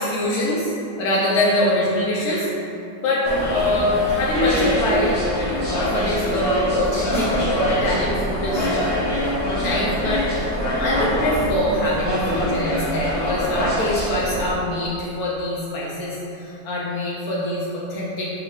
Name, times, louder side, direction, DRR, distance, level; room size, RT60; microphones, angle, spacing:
voice 1, 0.0-2.5 3.0-3.2 3.5-5.2 5.6-8.7 9.6-18.3, left 1 dB, 75° left, -5 dB, 0.9 m, -24 dB
sound 1, 3.2-14.5, equal, 20° left, 0.7 m, -24 dB
3.6 x 2.8 x 4.5 m, 2.8 s
omnidirectional pair, 2.0 m